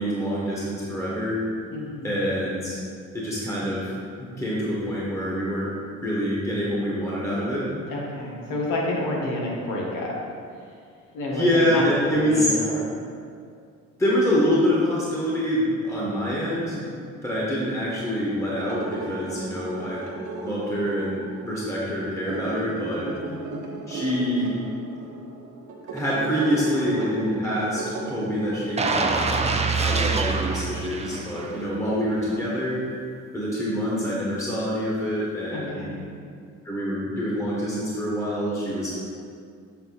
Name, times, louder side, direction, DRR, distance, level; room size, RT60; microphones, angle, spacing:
voice 1, 0.0-1.4 2.0-2.8 3.1-5.7 6.0-7.9 11.3-12.5 14.0-20.1 20.4-23.1 23.9-24.6 25.9-32.8 33.3-35.8 36.6-38.9, equal, 10° left, -6 dB, 1.3 m, -26 dB
voice 2, 1.7-2.2 7.9-10.1 11.1-12.9 23.0-23.7 35.5-36.1, left 1 dB, 90° left, -3 dB, 1.4 m, -30 dB
sound 1, 18.5-29.2, right 3 dB, 70° right, 1.0 m, -36 dB
sound 2, 28.8-31.7 32.1-32.3, right 4 dB, 20° right, 0.5 m, -25 dB
7.0 x 3.8 x 4.0 m, 2.3 s
cardioid pair, 90°, 30 cm